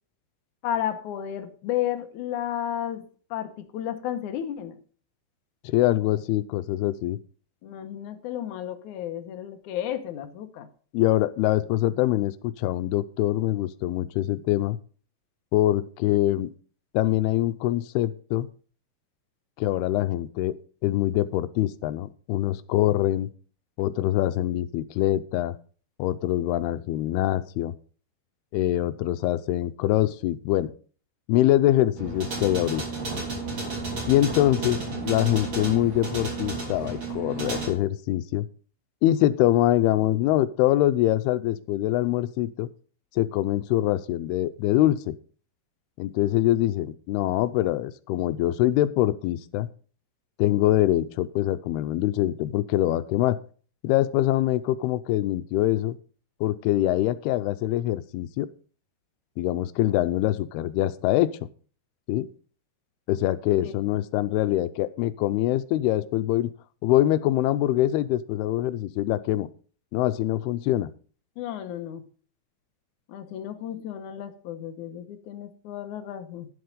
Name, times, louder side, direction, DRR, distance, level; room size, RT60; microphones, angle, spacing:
voice 1, 0.6-4.8 7.6-10.7 63.6-63.7 71.4-72.0 73.1-76.5, left 11 dB, 70° left, 8 dB, 2.0 m, -33 dB
voice 2, 5.6-7.2 10.9-14.8 15.5-16.5 16.9-18.5 19.6-20.5 20.8-23.3 23.8-25.6 26.0-27.7 28.5-30.7 31.3-32.8 34.1-38.5 39.0-42.7 43.2-45.1 46.0-49.7 50.4-53.4 53.8-56.0 56.4-58.5 59.4-61.3 62.1-62.3 63.1-66.5 66.8-69.5 69.9-70.9, left 14 dB, 90° left, 13 dB, 2.6 m, -24 dB
sound 1, 32.0-37.7, right 3 dB, 35° right, 3.8 m, -32 dB
11.0 x 7.9 x 5.2 m, 0.41 s
omnidirectional pair, 4.5 m